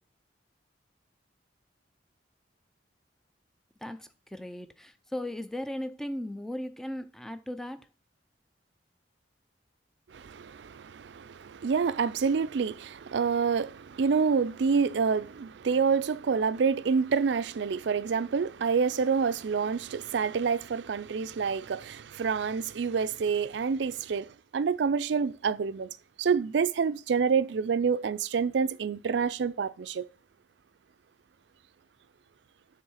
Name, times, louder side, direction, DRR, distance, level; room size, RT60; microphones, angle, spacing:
voice 1, 3.8-7.9, left 1 dB, 5° left, 0.5 m, -37 dB
voice 2, 10.1-25.9 26.2-30.0, right 5 dB, 70° right, 0.4 m, -27 dB
7.3 x 3.7 x 6.3 m
head